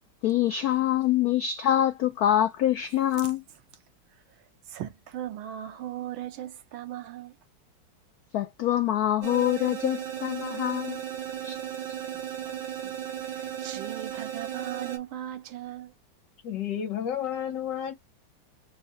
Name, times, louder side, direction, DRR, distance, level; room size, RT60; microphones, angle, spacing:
voice 1, 0.2-3.4 8.3-11.0 11.4-11.6, left 12 dB, 85° left, 0.8 m, -25 dB
voice 2, 4.1-7.3 12.1-12.9 13.2-15.9, right 12 dB, 85° right, 1.6 m, -39 dB
sound 1, 9.2-15.0, right 10 dB, 70° right, 1.8 m, -35 dB
voice 3, 16.4-17.9, left 9 dB, 65° left, 1.4 m, -31 dB
4.0 x 2.5 x 3.7 m
omnidirectional pair, 2.2 m